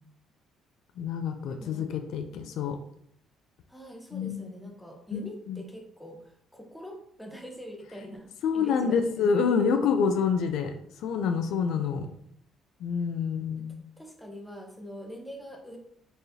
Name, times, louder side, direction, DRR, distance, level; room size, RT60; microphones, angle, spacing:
voice 1, 1.0-2.8 4.1-4.4 5.1-5.2 5.5-5.6 8.4-10.7 11.0-12.1 12.8-13.8, left 6 dB, 75° left, 7 dB, 0.4 m, -27 dB
voice 2, 1.5-2.0 3.7-9.3 9.6-9.9 13.5-13.7 14.0-15.8, equal, 5° left, 2 dB, 0.8 m, -44 dB
4.5 x 3.2 x 2.7 m, 0.70 s
cardioid pair, 105°, 0 cm